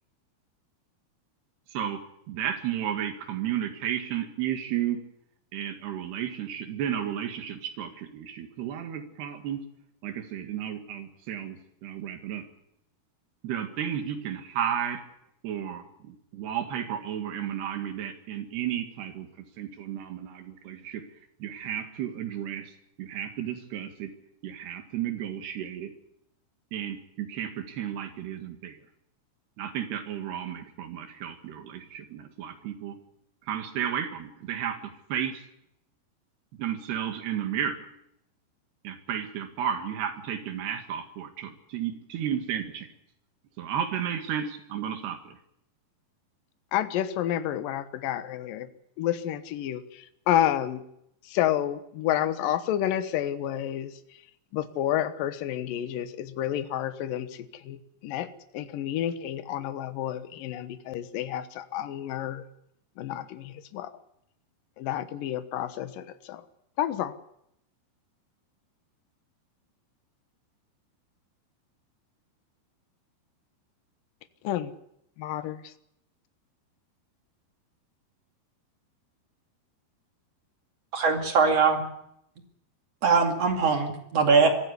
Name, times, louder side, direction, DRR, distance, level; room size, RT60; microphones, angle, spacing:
voice 1, 2.3-5.0 5.5-9.6 10.0-12.4 13.4-15.0 15.4-19.3 19.6-21.0 21.4-22.7 23.0-24.1 24.4-25.9 26.7-28.8 29.6-33.0 33.5-35.4 36.6-37.9 38.8-42.9 43.6-45.4, right 9 dB, 85° right, 7 dB, 4.1 m, -33 dB
voice 2, 46.7-48.7 49.0-50.8 51.3-53.9 54.5-57.8 58.0-58.3 58.5-62.4 63.0-63.9 64.8-66.4 66.8-67.1 74.4-74.7 75.2-75.6, left 11 dB, 65° left, 11 dB, 2.7 m, -30 dB
voice 3, 80.9-81.8 83.0-84.5, right 5 dB, 45° right, 4 dB, 3.0 m, -21 dB
24.0 x 15.0 x 8.3 m, 0.76 s
omnidirectional pair, 4.6 m